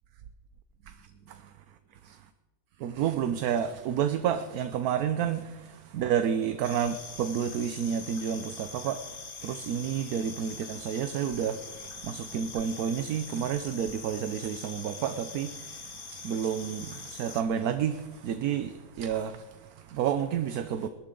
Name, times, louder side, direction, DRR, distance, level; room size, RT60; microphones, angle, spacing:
voice 1, 0.9-1.5 2.0-2.3 2.8-20.9, right 8 dB, 75° right, 1.2 m, -30 dB
sound 1, 6.6-17.4, left 5 dB, 40° left, 1.1 m, -43 dB
20.5 x 12.5 x 3.8 m
omnidirectional pair, 1.6 m